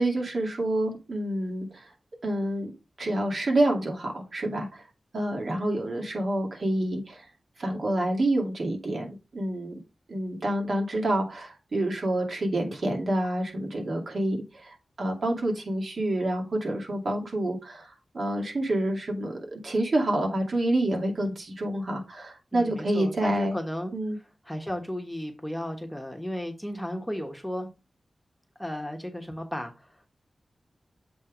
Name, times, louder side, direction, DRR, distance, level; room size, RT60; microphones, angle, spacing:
voice 1, 0.0-1.9 2.2-2.7 3.0-4.8 5.1-7.3 7.6-9.7 10.1-23.6 23.9-24.2, right 1 dB, 60° right, 2.4 m, -28 dB
voice 2, 22.5-23.9 24.4-27.7 28.6-30.0, equal, ahead, 1.3 m, -34 dB
7.6 x 3.8 x 5.0 m
wide cardioid pair, 105°, 0 cm